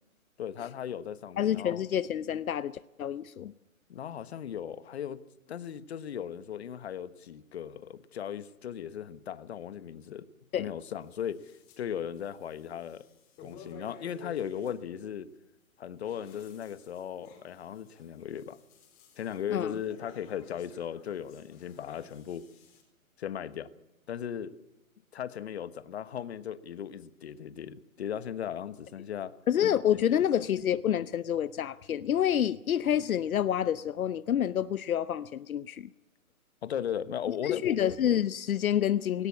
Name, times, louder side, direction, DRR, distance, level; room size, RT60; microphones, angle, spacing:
voice 1, 0.4-1.8 3.9-5.2 5.5-10.3 10.6-11.5 11.8-13.1 13.4-15.3 15.8-18.6 19.2-22.5 23.2-23.7 24.1-24.5 25.1-29.3 29.9-30.0 36.6-37.8, left 9 dB, 45° left, 1.2 m, -37 dB
voice 2, 1.4-3.5 10.5-10.7 19.5-19.8 29.5-35.9 37.4-39.3, left 10 dB, 75° left, 0.8 m, -28 dB
sound 1, 11.0-11.8 12.1-14.7 15.8-22.8, left 5 dB, 20° left, 4.3 m, -54 dB
18.5 x 18.0 x 8.4 m
hypercardioid pair, 165°, 43 cm